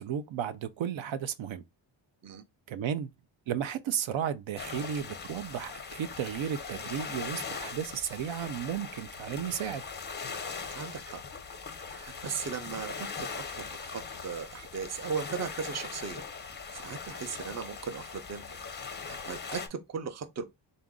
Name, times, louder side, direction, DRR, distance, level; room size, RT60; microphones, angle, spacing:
voice 1, 0.0-1.6 2.7-3.1 3.5-9.8, right 9 dB, 75° right, 0.6 m, -34 dB
sound 1, 4.6-19.7, left 5 dB, 25° left, 0.5 m, -40 dB
voice 2, 10.7-11.2 11.9-16.2 16.7-18.5 19.0-20.4, right 6 dB, 35° right, 0.5 m, -37 dB
3.9 x 2.5 x 3.6 m
wide cardioid pair, 160°, 47 cm